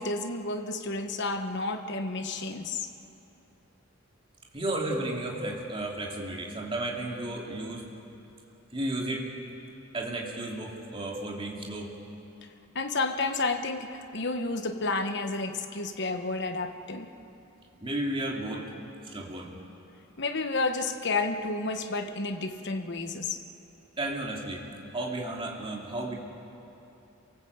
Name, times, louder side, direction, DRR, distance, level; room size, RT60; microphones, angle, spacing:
voice 1, 0.0-2.9 12.7-17.1 20.2-23.4, left 3 dB, 55° left, 7 dB, 1.2 m, -31 dB
voice 2, 4.5-7.9 8.7-9.3 9.9-11.9 17.8-18.7 19.0-19.6 24.0-24.7 24.9-26.1, right 1 dB, 25° right, -1 dB, 2.7 m, -33 dB
27.0 x 18.5 x 8.0 m, 2.9 s
head